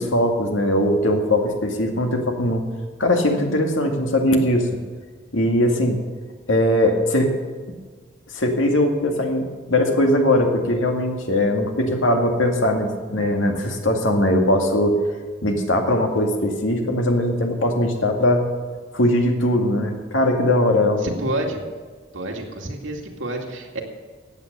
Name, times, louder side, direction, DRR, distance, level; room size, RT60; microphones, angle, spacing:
voice 1, 0.0-2.6 3.0-4.7 5.3-6.0 6.5-7.3 8.3-15.0 15.4-18.4 18.9-21.1, left 1 dB, 85° left, 3 dB, 2.1 m, -20 dB
voice 2, 21.0-21.6 22.1-23.8, right 1 dB, 85° right, 1 dB, 2.3 m, -28 dB
15.0 x 9.2 x 6.8 m, 1.5 s
head